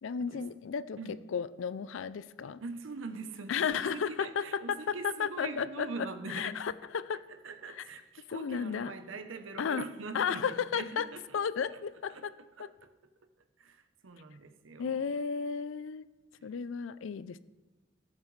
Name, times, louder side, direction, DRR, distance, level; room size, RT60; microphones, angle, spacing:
voice 1, 0.0-1.0 1.3-2.6 3.5-5.9 6.3-7.2 7.7-7.8 8.3-8.9 9.6-9.8 10.1-11.1 11.3-12.3 12.6-12.7 14.8-16.0 16.4-17.4, left 6 dB, 75° left, 15 dB, 0.4 m, -33 dB
voice 2, 2.6-6.6 7.3-10.5 10.7-11.4 11.7-11.8 12.1-12.2 12.6-12.9 13.6-15.1 16.4-16.5, right 4 dB, 80° right, 9 dB, 0.8 m, -43 dB
16.5 x 7.4 x 3.2 m, 1.2 s
head